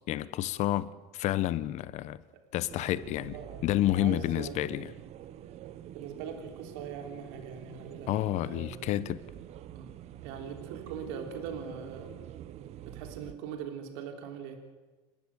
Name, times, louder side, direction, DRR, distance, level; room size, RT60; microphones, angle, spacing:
voice 1, 0.1-2.2 2.5-3.4 3.6-4.9 8.1-9.2, left 14 dB, 55° left, 1.1 m, -29 dB
sound 1, 2.7-13.3, right 11 dB, 50° right, 1.2 m, -46 dB
voice 2, 3.3-3.6 3.9-4.6 5.9-8.8 9.7-9.9 10.2-12.2 12.9-14.7, right 7 dB, 80° right, 3.3 m, -41 dB
29.0 x 12.5 x 9.0 m
supercardioid pair, 115°, 14 cm